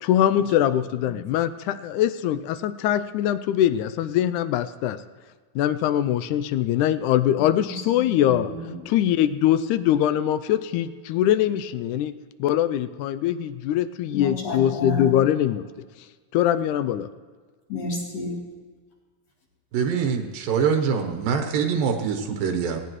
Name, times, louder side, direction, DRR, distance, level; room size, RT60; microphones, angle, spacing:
voice 1, 0.0-5.0 5.6-8.5 8.9-12.1 12.4-15.7 16.3-17.1, left 11 dB, 80° left, 13 dB, 1.8 m, -22 dB
voice 2, 7.4-8.9 14.1-15.2 17.7-18.4, left 2 dB, 50° left, -4 dB, 4.4 m, -32 dB
voice 3, 19.7-22.8, right 6 dB, 85° right, 4 dB, 2.9 m, -24 dB
18.5 x 18.0 x 3.1 m, 1.4 s
omnidirectional pair, 3.9 m